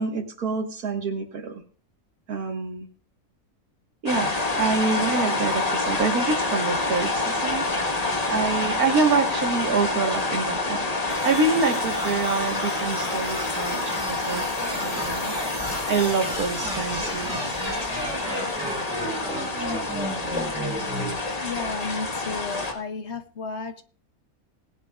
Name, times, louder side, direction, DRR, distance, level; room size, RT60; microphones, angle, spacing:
voice 1, 0.0-1.6 2.3-2.9 4.0-14.4 14.8-15.4 15.9-17.6, right 4 dB, 80° right, 5 dB, 2.0 m, -26 dB
sound 1, 4.1-22.7, left 2 dB, 30° left, 1.4 m, -27 dB
sound 2, 11.1-21.1, right 1 dB, 5° right, 7.2 m, -33 dB
voice 2, 21.4-23.8, left 4 dB, 55° left, 9 dB, 1.0 m, -33 dB
19.0 x 10.5 x 2.4 m, 0.41 s
omnidirectional pair, 1.5 m